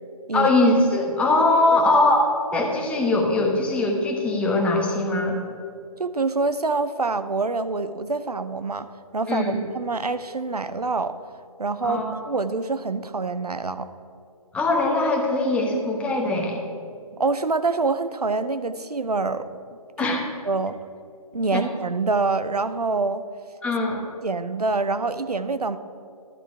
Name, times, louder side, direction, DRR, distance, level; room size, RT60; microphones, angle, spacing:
voice 1, 0.3-5.4 9.3-9.6 11.8-12.1 14.5-16.6 20.0-20.2 21.5-21.6 23.6-24.0, left 2 dB, 5° left, 0 dB, 1.0 m, -21 dB
voice 2, 6.0-8.9 9.1-11.1 11.6-12.0 12.3-13.9 17.1-19.5 20.0-20.2 20.5-20.8 21.3-23.2 24.2-25.8, right 3 dB, 90° right, 12 dB, 0.6 m, -25 dB
12.0 x 7.2 x 4.6 m, 2.3 s
figure-of-eight pair, 135°, 19 cm